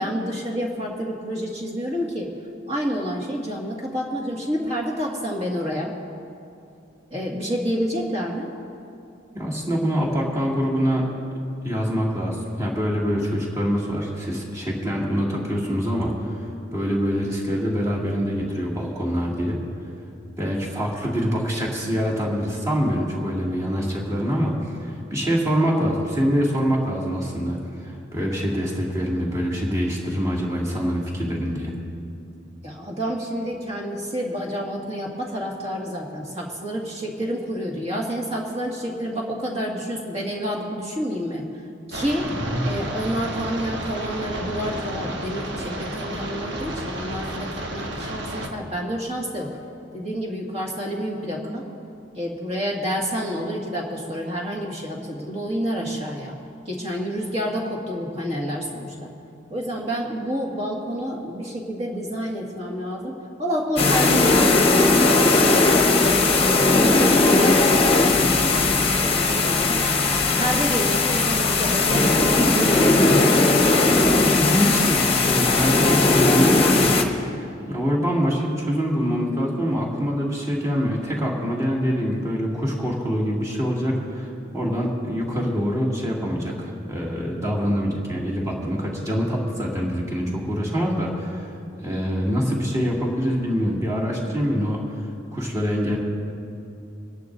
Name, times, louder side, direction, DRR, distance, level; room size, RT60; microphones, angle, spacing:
voice 1, 0.0-2.3 2.7-5.9 7.1-8.5 32.6-41.4 41.9-42.3 42.6-49.5 49.9-51.6 52.2-56.3 56.7-59.1 59.5-63.1 63.4-67.6 68.5-69.9 70.4-73.9, equal, 30° right, -2 dB, 2.0 m, -29 dB
voice 2, 9.3-11.0 11.6-16.4 16.7-19.6 20.4-31.7 42.3-42.6 73.0-73.2 74.1-76.9 77.2-77.3 77.7-91.5 91.8-94.8 95.3-96.0, equal, 15° right, -5 dB, 2.4 m, -25 dB
sound 1, 41.9-48.5, right 1 dB, 60° right, 1.3 m, -31 dB
sound 2, 63.8-77.0, left 3 dB, 30° left, 1.0 m, -18 dB
25.0 x 11.0 x 2.7 m, 2.5 s
head